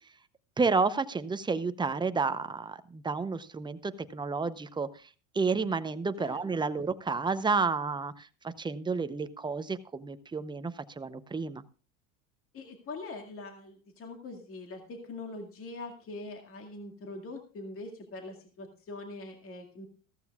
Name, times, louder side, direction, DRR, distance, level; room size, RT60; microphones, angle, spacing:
voice 1, 0.6-4.9 5.3-11.6, right 4 dB, 10° right, 12 dB, 0.6 m, -31 dB
voice 2, 12.5-19.9, left 2 dB, 35° left, 3 dB, 2.1 m, -43 dB
15.0 x 14.0 x 2.3 m, 0.36 s
supercardioid pair, 110°, 40 cm